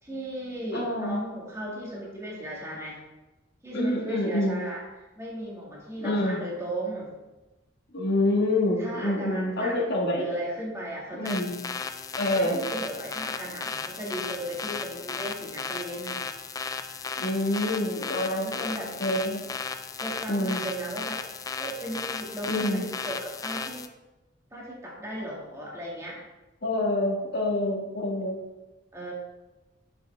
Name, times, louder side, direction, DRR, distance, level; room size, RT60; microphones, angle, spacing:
voice 1, 0.0-3.0 3.6-4.8 5.2-7.1 8.8-9.8 10.2-11.4 12.1-16.2 18.2-18.9 20.0-21.2 21.6-23.9 24.5-26.2 28.9-29.1, right 1 dB, 15° right, -4 dB, 2.0 m, -36 dB
voice 2, 0.7-1.2 3.7-4.6 6.0-6.4 7.9-10.2 11.1-11.5 12.2-12.6 17.2-18.7 19.0-19.4 20.3-20.6 22.5-22.8 26.6-28.4, left 1 dB, 55° left, -1 dB, 1.7 m, -27 dB
sound 1, 11.2-23.9, left 5 dB, 20° left, 0.3 m, -35 dB
7.6 x 7.1 x 3.4 m, 1.1 s
head